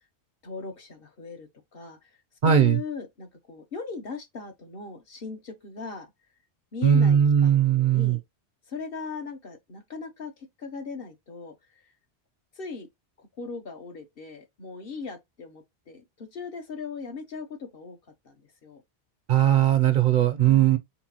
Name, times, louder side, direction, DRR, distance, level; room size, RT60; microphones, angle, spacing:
voice 1, 0.4-2.1 2.4-6.1 6.7-8.2 8.7-11.8 12.5-12.9 13.2-18.0 18.2-18.8 20.4-20.8, left 4 dB, 60° left, 1.2 m, -39 dB
voice 2, 2.4-2.8 6.8-8.2 19.3-20.8, right 9 dB, 55° right, 0.6 m, -19 dB
4.4 x 3.9 x 2.8 m
omnidirectional pair, 1.1 m